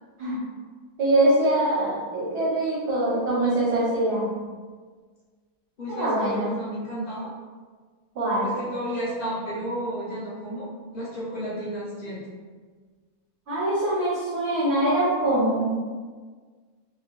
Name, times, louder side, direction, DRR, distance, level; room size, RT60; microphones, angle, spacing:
voice 1, 1.0-4.3 5.9-6.5 8.2-8.5 13.5-15.7, right 1 dB, 55° right, -7 dB, 0.8 m, -23 dB
voice 2, 5.8-7.3 8.4-10.7 10.9-12.2, equal, 50° left, -8 dB, 0.6 m, -32 dB
2.8 x 2.2 x 2.9 m, 1.5 s
omnidirectional pair, 1.7 m